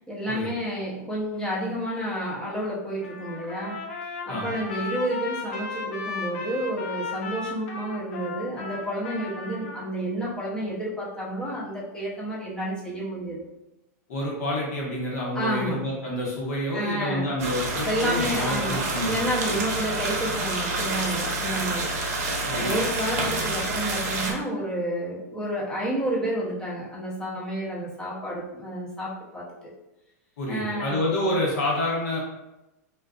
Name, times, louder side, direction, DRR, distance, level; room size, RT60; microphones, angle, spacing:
voice 1, 0.0-3.8 4.3-13.5 15.3-15.9 16.7-17.3 17.8-29.7 30.5-31.0, equal, 10° left, -6 dB, 0.7 m, -30 dB
Trumpet, 3.0-9.9, left 4 dB, 55° left, 0.6 m, -35 dB
voice 2, 4.3-4.6 14.1-19.3 19.6-19.7 22.5-22.8 23.0-23.3 30.4-32.2, left 1 dB, 70° left, -4 dB, 1.0 m, -28 dB
sound 1, 17.4-24.3, right 2 dB, 65° right, 0.6 m, -28 dB
2.4 x 2.4 x 2.3 m, 0.95 s
supercardioid pair, 140°, 9 cm